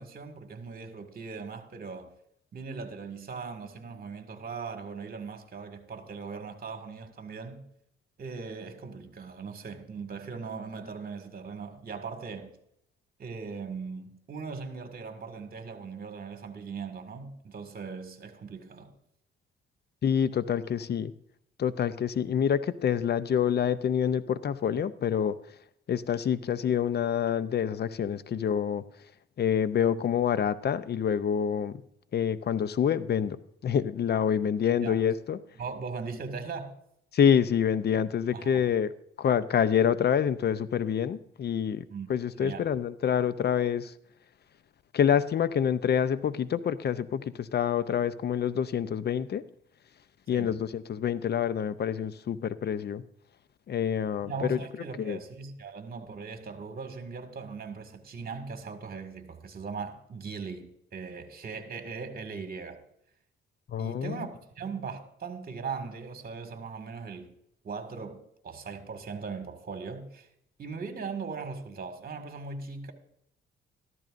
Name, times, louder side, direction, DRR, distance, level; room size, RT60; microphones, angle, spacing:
voice 1, 0.0-2.1 2.5-7.6 8.2-12.5 13.2-18.9 34.8-35.0 35.6-36.7 38.3-38.7 41.9-42.1 42.4-42.7 50.3-50.6 54.2-62.8 63.8-64.3 64.6-67.3 67.6-70.3 70.6-72.9, right 5 dB, 50° right, 2.0 m, -39 dB
voice 2, 20.0-21.1 21.6-25.4 25.9-28.8 29.4-31.8 32.1-35.4 37.1-38.9 39.2-41.8 42.1-43.9 44.9-49.4 50.3-53.0 53.7-54.6 55.0-55.2 63.7-64.3, left 8 dB, 55° left, 0.6 m, -27 dB
14.0 x 13.5 x 2.6 m
cardioid pair, 75°, 20 cm